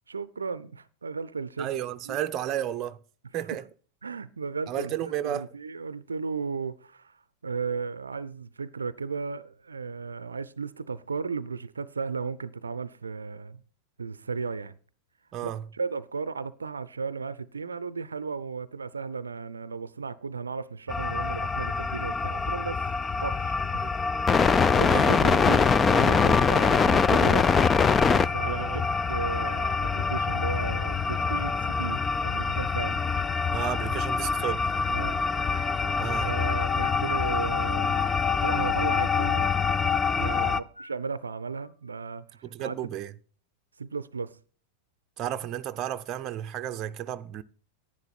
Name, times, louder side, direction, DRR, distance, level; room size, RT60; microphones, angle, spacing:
voice 1, 0.1-2.2 4.0-7.2 7.4-13.6 14.0-14.8 15.4-22.8 23.2-23.9 24.2-27.5 28.0-28.7 29.1-33.0 34.9-35.2 35.8-38.1 38.4-39.5 39.8-42.8 43.8-44.4, right 5 dB, 75° right, 0.5 m, -35 dB
voice 2, 1.6-3.0 3.3-3.6 4.7-5.5 15.3-15.6 23.8-24.0 24.9-25.5 28.4-28.8 33.5-34.7 36.0-36.3 40.2-40.5 42.4-43.1 45.2-47.4, right 11 dB, 35° right, 0.6 m, -33 dB
sound 1, 20.9-40.6, left 5 dB, 20° left, 0.5 m, -24 dB
sound 2, 33.8-34.6 35.3-37.4 37.9-39.7 40.2-42.1, left 1 dB, 85° left, 1.7 m, -50 dB
11.0 x 10.5 x 4.3 m
figure-of-eight pair, 90°, 0 cm